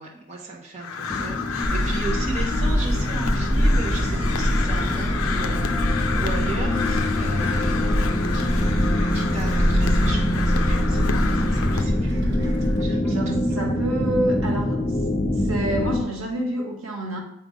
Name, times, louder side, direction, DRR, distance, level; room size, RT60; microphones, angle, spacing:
voice 1, 0.0-12.1 12.8-13.5, right 3 dB, 35° right, -4 dB, 1.1 m, -36 dB
Crow, 0.8-11.8, left 5 dB, 80° left, 0.6 m, -31 dB
sound 1, 1.1-16.0, left 1 dB, 20° left, 0.4 m, -26 dB
Gull seagull, 1.6-12.8, equal, 50° right, 1.2 m, -24 dB
voice 2, 13.0-14.9 15.4-17.2, right 1 dB, 70° right, 0 dB, 1.6 m, -27 dB
8.7 x 3.7 x 5.1 m, 0.77 s
head